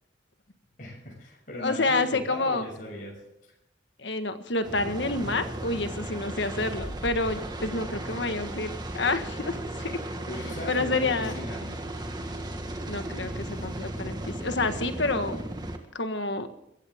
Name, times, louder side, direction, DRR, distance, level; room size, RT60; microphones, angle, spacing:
voice 1, 0.8-3.1 10.3-11.7, left 1 dB, 45° left, -2 dB, 6.9 m, -38 dB
voice 2, 1.6-2.7 4.0-10.0 10.7-11.3 12.9-15.4 15.9-16.5, left 3 dB, 70° left, 8 dB, 1.5 m, -28 dB
sound 1, 4.6-15.8, right 1 dB, 20° right, 1.7 m, -35 dB
22.5 x 15.0 x 3.7 m, 0.83 s
head